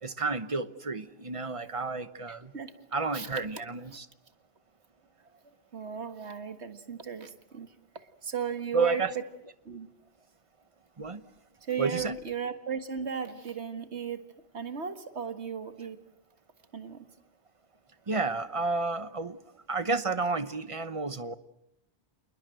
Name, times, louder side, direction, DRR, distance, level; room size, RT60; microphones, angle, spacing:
voice 1, 0.0-2.5 2.9-4.1 8.7-9.1 11.0-11.2 11.8-12.2 18.1-19.4 19.7-21.3, right 3 dB, 30° right, 13 dB, 1.0 m, -31 dB
voice 2, 2.3-2.8 3.1-3.3 3.9-4.0 5.4-9.0 9.7-9.9 11.6-14.3 14.5-16.0 16.7-17.1, right 7 dB, 65° right, 9 dB, 1.9 m, -36 dB
28.0 x 20.5 x 7.8 m, 0.85 s
omnidirectional pair, 1.2 m